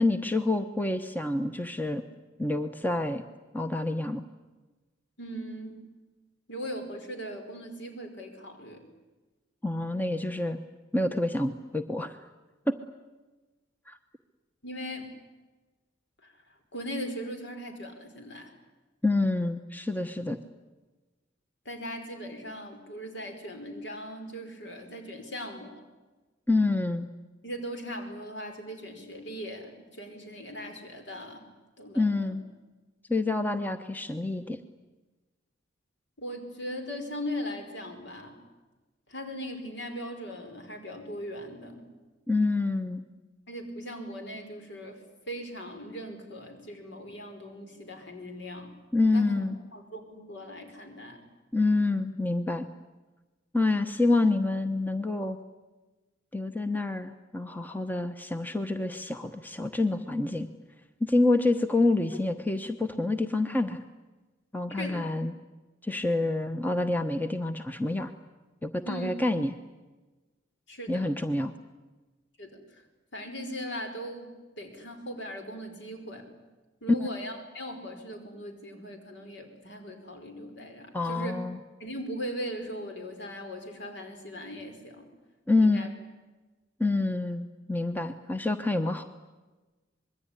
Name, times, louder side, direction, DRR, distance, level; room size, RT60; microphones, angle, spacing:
voice 1, 0.0-2.0 2.4-3.2 3.5-4.2 9.6-10.6 10.9-12.2 12.7-12.8 13.9-14.0 19.0-20.4 26.5-27.1 31.9-32.4 33.1-34.6 42.3-43.0 48.9-49.6 51.5-52.7 53.5-55.4 56.3-60.5 61.0-63.8 64.5-65.3 65.8-68.1 68.6-69.5 70.9-71.5 80.9-81.6 85.5-85.9 86.8-89.0, left 2 dB, 10° left, 8 dB, 1.0 m, -27 dB
voice 2, 5.2-5.8 6.5-8.8 14.6-15.1 16.2-16.3 16.7-18.5 21.6-25.8 27.4-31.5 31.8-32.1 36.2-38.4 39.1-41.9 43.5-48.7 49.1-49.4 49.7-51.3 64.7-65.0 68.8-69.2 70.7-71.1 72.4-72.8 73.1-76.3 76.8-81.4 81.8-85.0 85.6-85.9, equal, 65° left, 5 dB, 5.1 m, -39 dB
26.0 x 22.0 x 9.8 m, 1.2 s
head